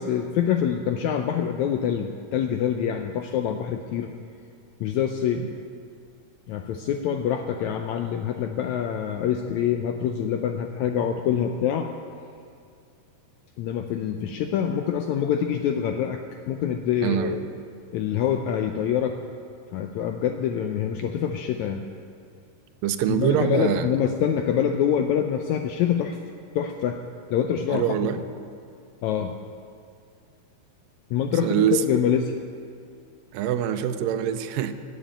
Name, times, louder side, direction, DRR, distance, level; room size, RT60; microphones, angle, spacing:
voice 1, 0.0-4.1 4.8-5.4 6.5-11.9 13.6-17.4 17.9-19.2 19.7-21.8 23.1-26.2 26.5-27.0 27.3-28.1 29.0-29.4 31.1-32.3, left 9 dB, 80° left, 5 dB, 1.6 m, -25 dB
voice 2, 17.0-17.5 22.8-23.9 27.7-28.2 31.4-31.8 33.3-34.7, right 10 dB, 90° right, 10 dB, 2.3 m, -24 dB
16.0 x 7.1 x 9.0 m, 2.4 s
omnidirectional pair, 3.9 m